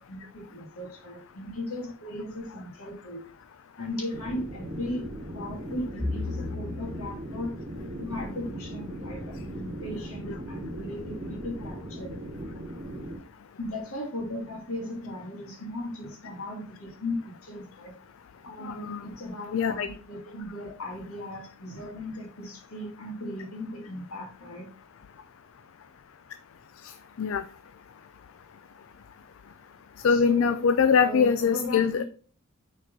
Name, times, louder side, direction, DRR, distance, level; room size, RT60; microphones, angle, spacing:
voice 1, 0.1-3.2 3.8-5.1 5.3-7.6 8.0-12.2 13.6-17.9 18.4-24.7 30.1-30.6 31.0-32.0, left 1 dB, 80° left, -2 dB, 2.8 m, -37 dB
sound 1, 4.1-13.2, equal, 30° right, 1.2 m, -38 dB
Bowed string instrument, 6.0-10.4, left 3 dB, 5° right, 1.5 m, -39 dB
voice 2, 18.6-19.0 19.5-19.9 27.2-27.4 30.0-32.0, left 6 dB, 65° left, 12 dB, 0.4 m, -23 dB
6.6 x 4.6 x 4.1 m, 0.42 s
head